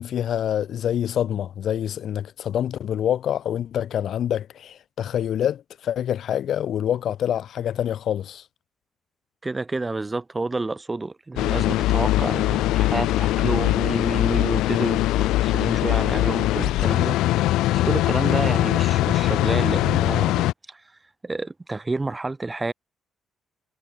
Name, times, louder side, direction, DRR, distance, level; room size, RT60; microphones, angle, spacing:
voice 1, 0.0-8.4, left 10 dB, 70° left, 1.2 m, -26 dB
voice 2, 9.4-17.5 17.7-20.8 21.2-22.7, right 3 dB, 25° right, 5.7 m, -29 dB
sound 1, 11.4-20.5, left 16 dB, 85° left, 0.6 m, -21 dB
supercardioid pair, 60°, 0 cm